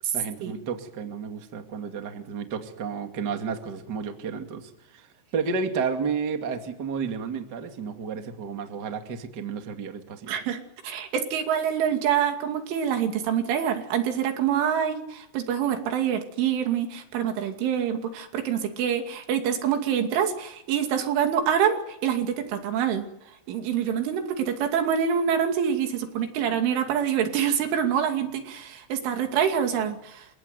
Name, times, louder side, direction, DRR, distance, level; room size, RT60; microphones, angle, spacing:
voice 1, 0.1-5.1 5.3-10.3, right 5 dB, 35° right, 5 dB, 1.8 m, -32 dB
voice 2, 10.3-23.1 23.5-30.3, right 8 dB, 85° right, 5 dB, 5.0 m, -26 dB
29.5 x 17.5 x 9.4 m, 0.79 s
omnidirectional pair, 5.4 m